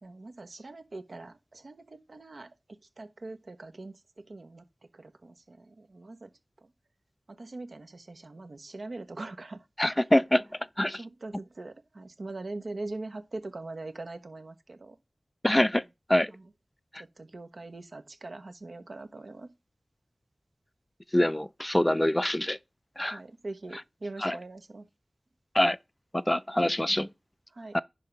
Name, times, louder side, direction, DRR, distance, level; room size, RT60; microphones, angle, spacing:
voice 1, 0.0-2.5 3.0-4.6 4.9-6.3 6.6-6.7 7.3-9.7 10.0-10.1 10.9-15.0 16.3-16.4 17.2-19.5 23.1-24.9 27.5-27.8, right 2 dB, 75° right, 1.1 m, -42 dB
voice 2, 9.8-10.4 10.8-11.0 15.4-15.8 16.1-16.3 21.1-22.6 23.0-23.2 24.2-24.4 25.5-25.8 26.1-27.1 27.7-27.8, left 1 dB, 20° left, 0.4 m, -24 dB
10.5 x 3.6 x 5.9 m
wide cardioid pair, 45°, 0 cm